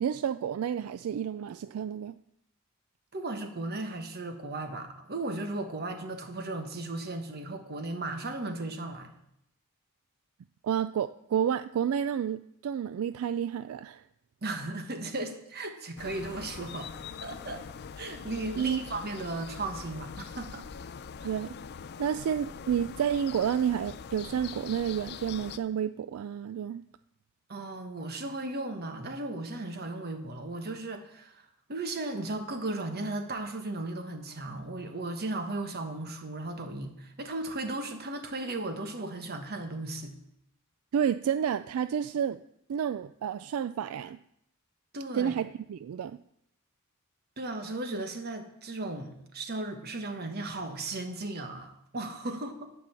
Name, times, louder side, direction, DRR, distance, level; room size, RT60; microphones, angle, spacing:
voice 1, 0.0-2.1 10.6-14.0 18.6-18.8 21.2-21.6 22.0-26.8 40.9-42.4 42.7-44.2 45.1-46.2, right 8 dB, 75° right, 13 dB, 0.3 m, -30 dB
voice 2, 3.1-9.1 14.4-16.9 17.2-17.6 18.0-20.7 21.2-21.3 27.5-31.4 31.7-40.2 44.9-45.3 47.4-52.7, right 2 dB, 45° right, 7 dB, 1.2 m, -36 dB
sound 1, 16.0-25.6, left 6 dB, 50° left, 0.4 m, -43 dB
10.5 x 5.4 x 7.5 m, 0.78 s
head